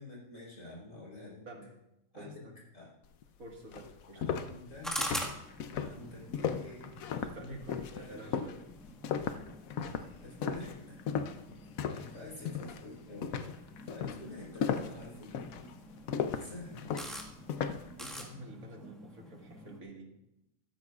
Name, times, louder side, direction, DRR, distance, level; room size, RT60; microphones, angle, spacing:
voice 1, 0.0-1.5 2.1-2.9 4.1-5.0 5.7-7.0 7.9-8.2 10.2-11.0 12.1-13.4 13.9-15.5 16.3-16.9, left 1 dB, 60° left, -4 dB, 4.9 m, -47 dB
voice 2, 1.5-1.8 2.2-2.6 3.4-4.4 7.1-8.6 11.8-12.4 18.0-20.2, right 1 dB, 80° right, 1 dB, 2.2 m, -49 dB
sound 1, 3.2-3.3 3.7-12.2 12.5-12.8 13.2-17.9, left 7 dB, 80° left, 1.1 m, -36 dB
sound 2, 4.8-19.8, equal, ahead, 1.6 m, -46 dB
15.5 x 13.0 x 2.4 m, 0.87 s
omnidirectional pair, 1.4 m